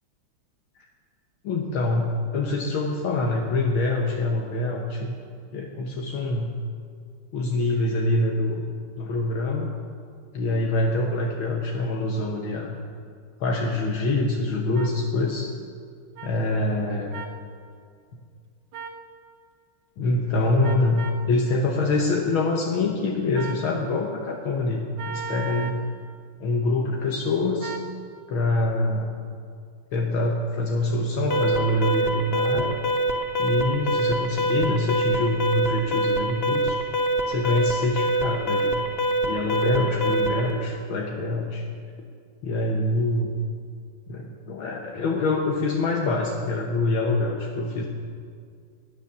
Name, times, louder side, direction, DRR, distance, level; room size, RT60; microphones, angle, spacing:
voice 1, 1.4-5.2 5.5-6.5 7.3-8.7 9.0-9.7 10.3-12.8 13.4-15.5 16.2-17.2 20.0-25.8 26.4-27.7 28.3-29.1 29.9-32.8 33.4-36.8 37.3-38.8 39.2-41.6 42.4-43.3 44.1-47.9, left 2 dB, 70° left, 1 dB, 1.9 m, -25 dB
sound 1, 14.7-14.9 16.2-16.3 17.1-17.4 18.7-19.0 20.6-21.2 23.3-23.7 25.0-25.8 27.6-27.9, right 6 dB, 65° right, 1.7 m, -36 dB
Alarm, 31.3-40.5, right 1 dB, 40° left, 0.9 m, -25 dB
16.5 x 10.0 x 6.7 m, 2.2 s
omnidirectional pair, 2.4 m